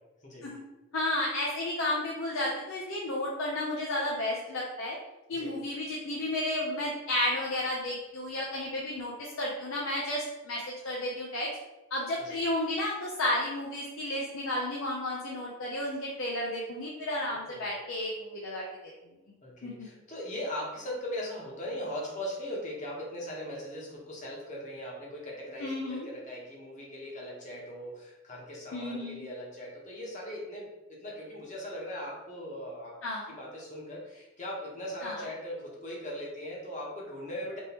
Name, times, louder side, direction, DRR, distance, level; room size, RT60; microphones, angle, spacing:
voice 1, 0.9-4.9 5.3-11.5 11.9-18.6 19.6-19.9 25.6-26.1 28.7-29.3 33.0-33.4 35.0-35.3, left 1 dB, 85° left, -4 dB, 0.6 m, -32 dB
voice 2, 19.4-33.0 33.3-37.6, left 1 dB, 40° left, -3 dB, 1.0 m, -39 dB
3.6 x 3.0 x 2.9 m, 1.0 s
head